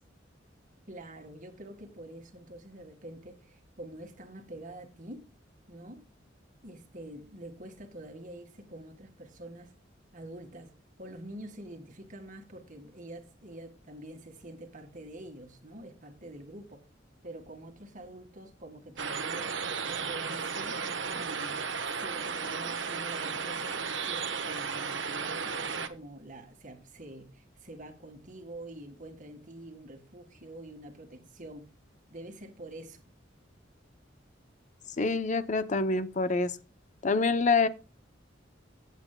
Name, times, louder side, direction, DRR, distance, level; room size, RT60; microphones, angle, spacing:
voice 1, 0.9-5.3 5.7-6.1 6.6-9.7 10.1-16.9 17.2-20.8 21.1-21.6 22.0-31.7 32.1-33.1, right 1 dB, 45° right, 1.8 m, -46 dB
sound 1, 19.0-25.9, right 5 dB, 85° right, 1.1 m, -34 dB
voice 2, 35.0-36.6 37.0-37.7, left 3 dB, 40° left, 0.6 m, -26 dB
16.0 x 8.2 x 2.2 m
head